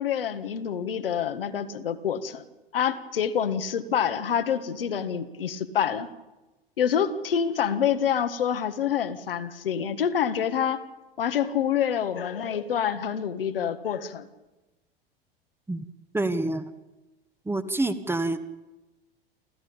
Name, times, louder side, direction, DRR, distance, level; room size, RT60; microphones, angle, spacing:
voice 1, 0.0-2.4 2.7-6.1 6.8-10.8 11.2-14.3, left 8 dB, 70° left, 8 dB, 1.7 m, -27 dB
voice 2, 16.1-16.7 17.5-18.4, right 2 dB, 10° right, 11 dB, 1.4 m, -27 dB
29.0 x 14.0 x 8.8 m, 1.1 s
figure-of-eight pair, 85°, 29 cm